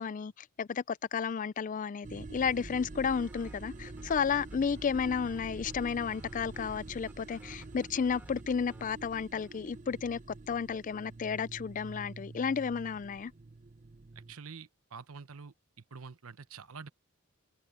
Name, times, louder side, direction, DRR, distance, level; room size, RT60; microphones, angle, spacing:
voice 1, 0.0-10.2 10.5-13.3, left 6 dB, 35° left, 0.3 m, -32 dB
sound 1, 2.0-14.3, right 2 dB, 35° right, 0.7 m, -46 dB
sound 2, 3.1-9.8, right 1 dB, 10° right, 2.6 m, -61 dB
voice 2, 14.1-15.5 15.9-16.9, right 5 dB, 75° right, 0.9 m, -47 dB
head